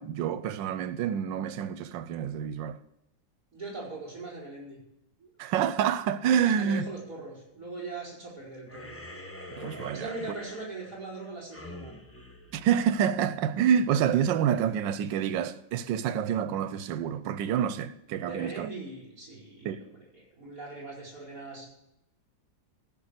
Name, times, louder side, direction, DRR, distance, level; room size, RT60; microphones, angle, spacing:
voice 1, 0.0-2.8 5.4-6.9 9.6-10.1 12.5-18.7 19.6-19.8, right 8 dB, 90° right, 1.3 m, -27 dB
voice 2, 3.5-4.8 5.2-5.3 6.4-9.0 9.9-12.0 18.3-21.7, right 3 dB, 50° right, 5.2 m, -41 dB
sound 1, 8.7-13.4, left 1 dB, 20° left, 0.3 m, -45 dB
14.5 x 5.4 x 6.6 m
omnidirectional pair, 2.0 m